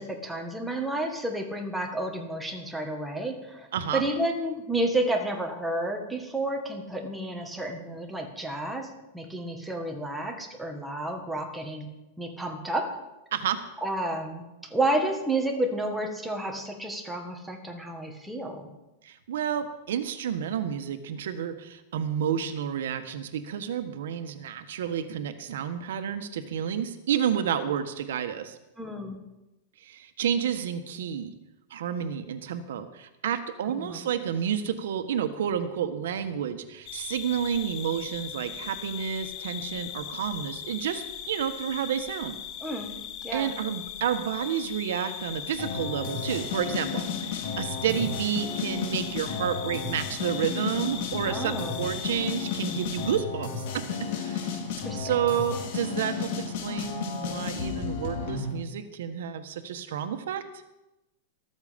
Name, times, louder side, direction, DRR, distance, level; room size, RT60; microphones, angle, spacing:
voice 1, 0.0-3.7 3.9-11.9 12.2-13.0 13.8-14.4 14.7-18.7 28.8-29.2 33.8-34.0 42.6-42.9 43.2-43.5 51.3-51.9 54.8-55.0, right 1 dB, 5° right, 2 dB, 1.7 m, -31 dB
voice 2, 3.7-4.0 13.3-13.6 19.0-28.6 29.8-31.3 31.7-42.4 43.3-53.8 54.2-54.5 54.9-60.4, right 8 dB, 75° right, 9 dB, 1.3 m, -30 dB
sound 1, 36.9-53.2, left 10 dB, 35° left, 1.1 m, -39 dB
sound 2, 45.6-58.5, left 6 dB, 55° left, 4.2 m, -33 dB
14.0 x 14.0 x 5.3 m, 0.96 s
supercardioid pair, 170°, 0 cm